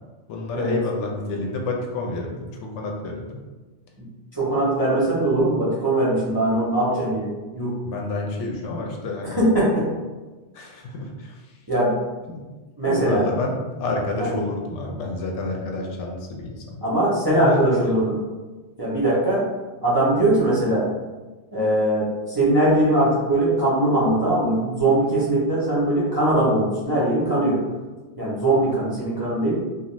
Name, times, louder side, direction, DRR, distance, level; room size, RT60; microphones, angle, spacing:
voice 1, 0.3-3.4 7.8-9.4 10.5-11.4 12.3-12.4 12.8-16.8 17.3-18.0, left 2 dB, 80° left, 0 dB, 0.9 m, -29 dB
voice 2, 4.3-7.7 9.4-9.9 11.7-12.0 12.8-13.2 14.2-14.3 16.8-18.2 18.8-19.5 19.8-20.8 21.5-27.6 28.2-29.6, right 1 dB, 25° right, -8 dB, 0.6 m, -21 dB
2.5 x 2.3 x 3.0 m, 1.2 s
omnidirectional pair, 1.2 m